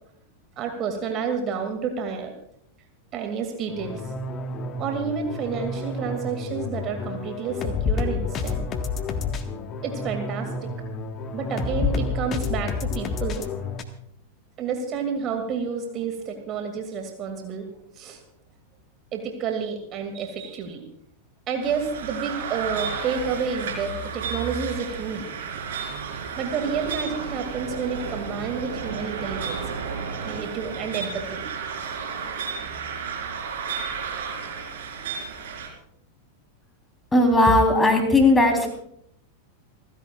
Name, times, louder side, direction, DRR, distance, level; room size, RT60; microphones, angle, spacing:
voice 1, 0.6-2.3 3.1-4.0 4.8-8.7 9.8-10.7 11.3-13.5 14.6-17.6 18.0-18.2 19.1-20.8 21.5-25.3 26.3-29.6 30.2-31.5, right 6 dB, 35° right, 4 dB, 2.4 m, -30 dB
sound 1, 3.7-13.8, left 4 dB, 30° left, 1.6 m, -29 dB
sound 2, 21.6-35.7, right 6 dB, 60° right, 4.4 m, -32 dB
voice 2, 37.1-38.8, left 2 dB, 10° left, 3 dB, 3.7 m, -18 dB
29.5 x 15.5 x 2.4 m, 0.69 s
figure-of-eight pair, 90°, 0 cm